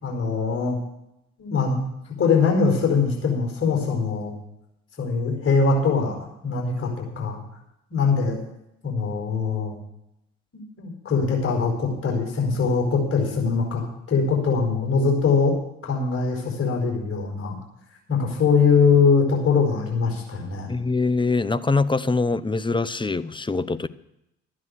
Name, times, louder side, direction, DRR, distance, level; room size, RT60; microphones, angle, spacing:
voice 1, 0.0-0.8 1.4-1.8 2.2-4.3 5.0-6.2 6.4-7.4 7.9-8.4 8.8-9.8 10.5-13.8 14.1-15.5 15.8-17.5 18.1-20.7, left 5 dB, 40° left, -1 dB, 4.7 m, -22 dB
voice 2, 20.7-23.9, left 3 dB, 15° left, 14 dB, 0.7 m, -23 dB
12.5 x 9.8 x 6.6 m, 0.83 s
hypercardioid pair, 50°, 34 cm